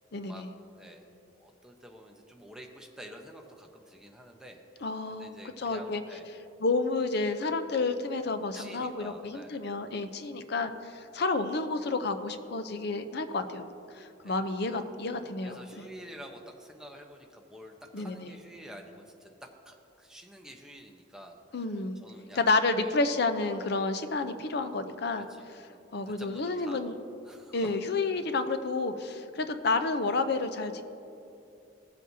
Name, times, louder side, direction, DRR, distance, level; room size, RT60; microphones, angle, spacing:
voice 1, 0.1-0.5 4.8-6.0 6.6-13.7 13.9-15.9 17.9-18.4 21.5-22.0 22.3-27.0 27.5-30.8, left 3 dB, 60° left, 9 dB, 0.6 m, -30 dB
voice 2, 0.8-1.1 1.3-6.3 8.5-9.6 14.2-14.8 15.4-21.4 21.7-22.4 22.8-23.0 25.3-27.0 27.2-27.8, equal, 5° right, 1 dB, 0.8 m, -49 dB
17.0 x 7.5 x 2.7 m, 2.8 s
head